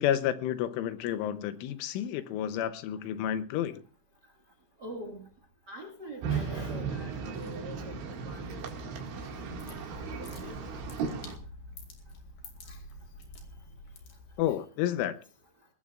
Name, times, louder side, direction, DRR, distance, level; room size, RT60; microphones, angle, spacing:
voice 1, 0.0-3.8 14.4-15.2, left 11 dB, 80° left, 3.3 m, -30 dB
voice 2, 4.8-5.2 5.7-8.0 8.2-9.8 10.1-10.6 12.7-12.8, right 1 dB, 85° right, 0.9 m, -45 dB
sound 1, 6.2-11.4, right 5 dB, 70° right, 4.4 m, -36 dB
sound 2, 9.1-14.6, left 1 dB, 55° left, 3.8 m, -48 dB
21.0 x 19.0 x 2.5 m
omnidirectional pair, 5.6 m